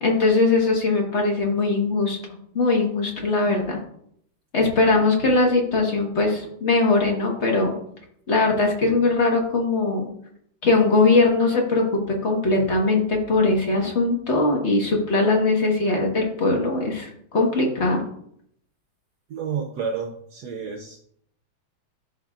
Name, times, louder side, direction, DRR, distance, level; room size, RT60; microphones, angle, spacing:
voice 1, 0.0-2.2 2.5-3.8 4.5-7.7 8.3-10.1 10.6-18.0, left 3 dB, 35° left, 0 dB, 1.4 m, -20 dB
voice 2, 19.3-21.0, right 6 dB, 70° right, 4 dB, 1.0 m, -30 dB
12.5 x 4.4 x 2.4 m, 0.69 s
omnidirectional pair, 2.3 m